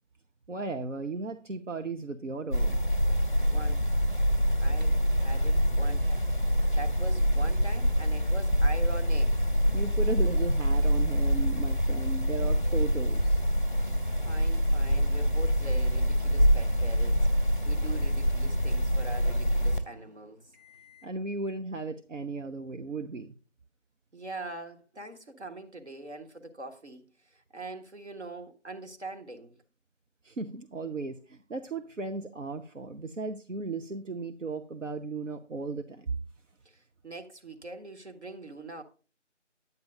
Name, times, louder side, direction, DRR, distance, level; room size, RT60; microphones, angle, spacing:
voice 1, 0.5-2.8 9.7-13.4 21.0-23.3 30.2-36.1, right 3 dB, 90° right, 0.9 m, -36 dB
sound 1, 2.5-19.8, equal, 40° left, 0.5 m, -25 dB
voice 2, 3.3-3.9 4.6-6.2 6.5-9.4 14.2-17.3 17.7-20.4 24.1-27.0 27.3-29.5 36.6-38.8, right 2 dB, 65° right, 1.6 m, -43 dB
sound 2, 4.8-21.2, left 1 dB, 35° right, 0.9 m, -49 dB
9.4 x 8.9 x 2.6 m
figure-of-eight pair, 180°, 36 cm